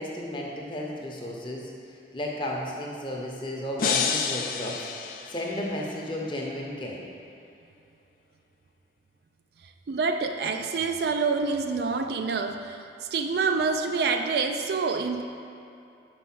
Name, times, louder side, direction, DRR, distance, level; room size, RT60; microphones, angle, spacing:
voice 1, 0.0-7.0, left 1 dB, 25° left, -2 dB, 0.8 m, -34 dB
sound 1, 3.8-5.9, left 6 dB, 50° left, 0.4 m, -29 dB
voice 2, 9.9-15.2, right 4 dB, 60° right, 6 dB, 0.4 m, -27 dB
5.1 x 4.8 x 5.9 m, 2.7 s
head